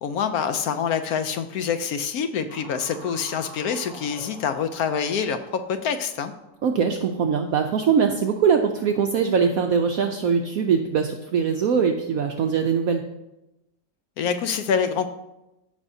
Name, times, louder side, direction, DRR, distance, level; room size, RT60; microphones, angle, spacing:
voice 1, 0.0-5.4 5.7-6.3 14.2-15.1, left 7 dB, 70° left, 9 dB, 0.9 m, -26 dB
sound 1, 2.5-7.5, right 1 dB, 90° left, 3.8 m, -45 dB
voice 2, 6.6-13.0, right 6 dB, 70° right, 4 dB, 0.8 m, -22 dB
14.5 x 5.5 x 2.7 m, 0.92 s
omnidirectional pair, 2.0 m